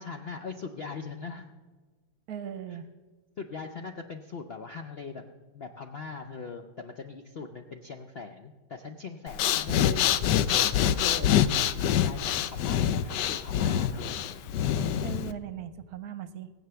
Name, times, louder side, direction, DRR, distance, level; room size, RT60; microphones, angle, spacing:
voice 1, 0.0-1.5 2.7-2.8 3.4-5.2 5.5-10.1 10.5-14.3, left 5 dB, 60° left, 5 dB, 0.6 m, -41 dB
voice 2, 2.3-2.9 9.7-9.9 15.0-16.5, right 9 dB, 65° right, 12 dB, 1.1 m, -39 dB
Breathing, 9.3-15.3, left 10 dB, 75° left, 1.2 m, -25 dB
18.5 x 8.1 x 6.9 m, 1.3 s
omnidirectional pair, 1.9 m